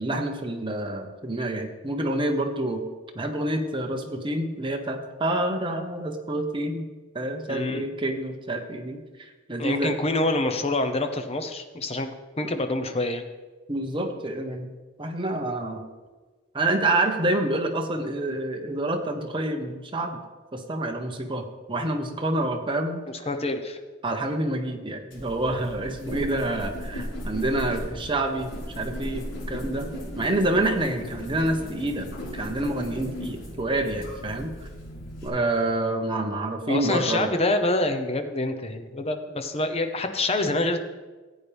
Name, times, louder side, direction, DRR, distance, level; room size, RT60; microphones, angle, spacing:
voice 1, 0.0-2.9 3.1-6.9 7.1-9.9 13.7-14.7 15.0-15.8 16.5-20.2 20.5-23.0 24.0-29.9 30.1-32.1 32.3-34.5 35.2-37.3, right 1 dB, 25° right, 3 dB, 1.1 m, -27 dB
voice 2, 7.5-7.8 9.6-12.1 12.4-13.2 23.3-23.8 36.7-40.8, left 2 dB, 30° left, 7 dB, 0.9 m, -26 dB
sound 1, 25.1-35.3, equal, 80° left, 4.1 m, -36 dB
15.0 x 8.7 x 3.5 m, 1.3 s
head